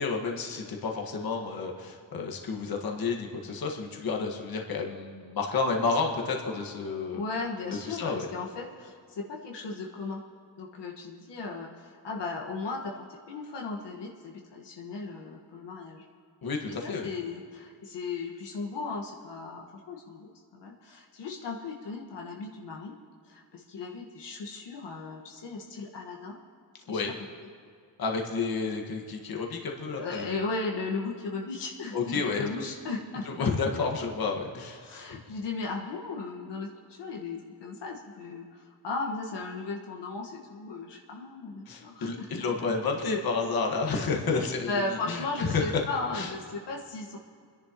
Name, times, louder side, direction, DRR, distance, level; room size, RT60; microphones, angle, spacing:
voice 1, 0.0-7.2 7.7-8.3 16.4-17.1 26.9-27.1 28.0-30.4 31.9-32.5 33.3-34.8 41.7-45.8 46.1-46.3, left 4 dB, 55° left, 1 dB, 1.7 m, -30 dB
voice 2, 7.1-10.2 10.6-16.0 16.7-22.9 23.2-26.4 26.9-27.0 29.9-33.5 34.8-42.3 42.6-42.7 43.8-44.0 44.7-47.2, left 3 dB, 75° left, -1 dB, 1.6 m, -36 dB
30.0 x 11.0 x 3.0 m, 2.2 s
cardioid pair, 115°, 42 cm